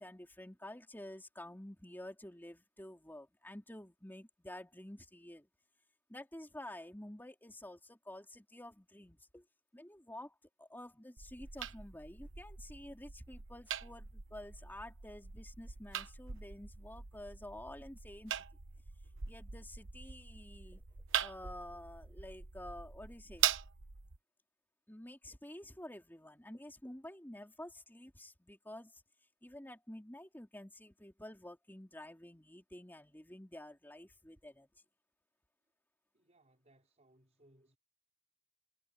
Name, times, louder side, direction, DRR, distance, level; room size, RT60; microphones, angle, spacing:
voice 1, 0.0-5.5 6.1-9.5 9.7-18.4 19.3-20.8 21.2-23.5 24.9-29.0 29.4-34.7, left 1 dB, 10° left, 3.6 m, -50 dB
sound 1, 11.2-24.2, right 9 dB, 60° right, 1.1 m, -42 dB
voice 2, 36.1-37.8, right 1 dB, 30° right, 4.8 m, -68 dB
head